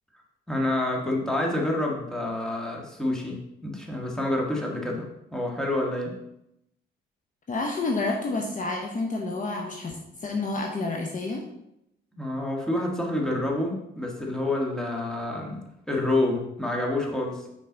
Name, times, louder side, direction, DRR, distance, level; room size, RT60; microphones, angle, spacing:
voice 1, 0.5-5.0 5.3-6.1 12.1-17.5, left 1 dB, 5° left, -1 dB, 1.6 m, -28 dB
voice 2, 7.5-11.4, left 3 dB, 40° left, 1 dB, 0.9 m, -29 dB
5.6 x 4.9 x 3.9 m, 0.83 s
cardioid pair, 90°, 20 cm